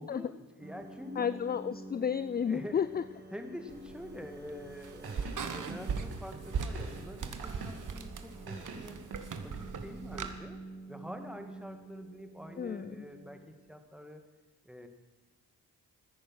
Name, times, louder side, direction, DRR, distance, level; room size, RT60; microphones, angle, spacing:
voice 1, 0.0-1.4 2.5-2.8 3.3-9.0 9.4-10.6 10.9-14.3 14.6-14.9, equal, ahead, 6 dB, 2.0 m, -46 dB
sound 1, 0.6-13.8, right 2 dB, 25° right, 2.2 m, -49 dB
voice 2, 1.2-3.0 12.6-13.0, left 7 dB, 25° left, 15 dB, 0.4 m, -32 dB
sound 2, 3.7-10.3, right 5 dB, 50° right, 1.4 m, -40 dB
sound 3, 5.0-8.0 8.5-9.8, right 4 dB, 70° right, 2.6 m, -45 dB
15.0 x 9.9 x 6.3 m, 1.3 s
cardioid pair, 60°, 40 cm